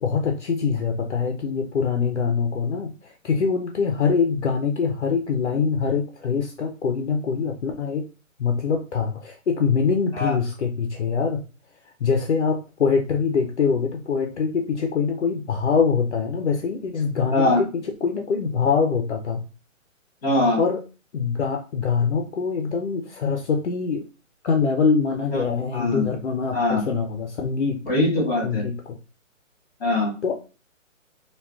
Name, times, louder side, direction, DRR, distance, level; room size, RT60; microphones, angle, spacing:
voice 1, 0.0-8.1 8.4-11.4 12.0-17.7 18.0-19.4 20.6-20.8 21.1-24.0 24.4-27.8 28.4-28.7 30.2-30.4, left 5 dB, 60° left, 4 dB, 0.5 m, -24 dB
voice 2, 17.3-17.6 20.2-20.6 25.3-25.4 25.7-26.1 26.5-26.8 27.8-28.6 29.8-30.1, left 2 dB, 15° left, -4 dB, 1.5 m, -22 dB
3.5 x 2.3 x 2.3 m, 0.34 s
hypercardioid pair, 175°, 40 cm